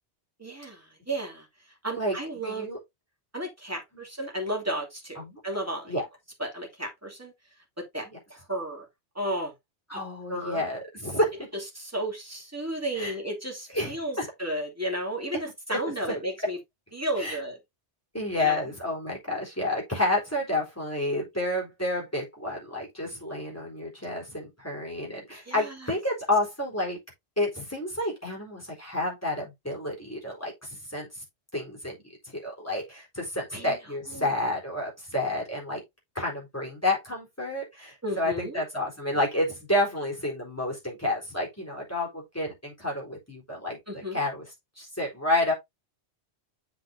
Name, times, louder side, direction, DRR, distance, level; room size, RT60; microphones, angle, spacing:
voice 1, 0.4-1.5 1.8-2.7 3.3-6.0 6.4-7.3 7.8-8.9 9.1-9.5 10.3-10.7 11.7-16.6 16.9-17.6 18.4-18.7 25.4-25.9 33.5-33.7 34.1-34.3 38.0-38.6 43.9-44.2, right 1 dB, 15° right, 2.8 m, -33 dB
voice 2, 2.4-2.8 5.2-5.4 5.9-6.0 9.9-11.5 12.9-13.1 13.7-14.2 15.7-15.8 17.2-17.4 18.1-27.0 27.4-31.1 31.5-32.0 32.3-35.8 36.1-44.4 44.8-45.5, left 1 dB, 15° left, 4.2 m, -30 dB
7.4 x 7.0 x 2.7 m
omnidirectional pair, 1.2 m